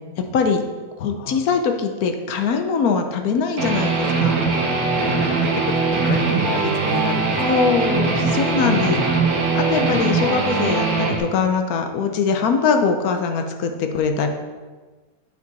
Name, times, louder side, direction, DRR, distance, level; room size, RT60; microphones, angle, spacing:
voice 1, 0.3-0.6 1.0-4.3 7.4-9.0 9.5-14.3, left 5 dB, 80° left, 5 dB, 1.2 m, -22 dB
voice 2, 1.1-1.4 5.0-7.7 8.6-9.1, left 5 dB, 55° left, 6 dB, 0.7 m, -29 dB
Guitar, 3.6-11.2, right 4 dB, 85° right, 1.7 m, -21 dB
8.2 x 5.1 x 4.1 m, 1.3 s
omnidirectional pair, 1.5 m